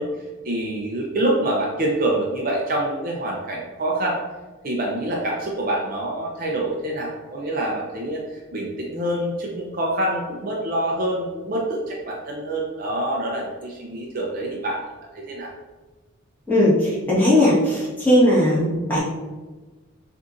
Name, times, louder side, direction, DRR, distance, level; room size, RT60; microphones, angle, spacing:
voice 1, 0.0-4.2 4.6-14.8 15.1-15.5, right 1 dB, 45° right, -2 dB, 0.6 m, -26 dB
voice 2, 16.5-19.0, left 1 dB, 10° left, -9 dB, 1.5 m, -18 dB
6.3 x 2.7 x 2.6 m, 1.2 s
head